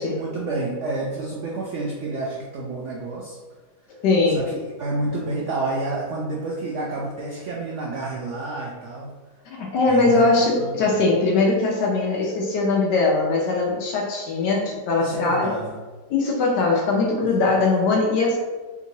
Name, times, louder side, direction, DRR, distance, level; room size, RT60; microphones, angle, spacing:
voice 1, 0.0-3.4 4.3-9.1 9.9-10.2 10.5-10.9 14.9-15.8, right 2 dB, 85° right, -3 dB, 0.6 m, -29 dB
voice 2, 4.0-4.4 9.5-15.6 16.1-18.4, left 3 dB, 80° left, -2 dB, 1.2 m, -21 dB
3.5 x 2.9 x 2.6 m, 1.3 s
omnidirectional pair, 1.8 m